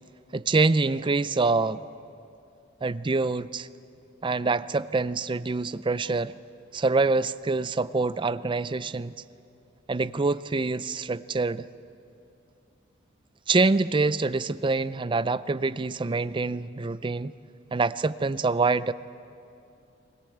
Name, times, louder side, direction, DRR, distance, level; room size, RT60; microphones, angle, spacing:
voice 1, 0.3-1.8 2.8-3.7 4.2-6.3 6.7-9.1 9.9-11.7 13.5-17.3 17.7-18.9, right 3 dB, 25° right, 15 dB, 0.4 m, -25 dB
21.5 x 20.5 x 8.0 m, 2.6 s
head